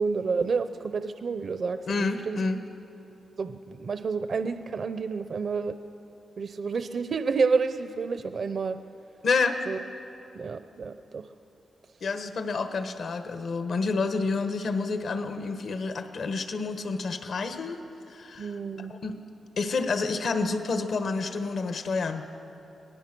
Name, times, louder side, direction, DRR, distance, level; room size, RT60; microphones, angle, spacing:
voice 1, 0.0-2.4 3.4-5.8 6.4-8.8 9.7-9.8 10.3-11.2 18.4-18.9, right 5 dB, 55° right, 10 dB, 0.6 m, -29 dB
voice 2, 1.9-2.6 9.2-9.6 12.0-17.8 18.1-19.2 19.6-22.2, left 4 dB, 65° left, 8 dB, 1.3 m, -29 dB
24.5 x 18.0 x 6.1 m, 2.8 s
cardioid pair, 95°, 0 cm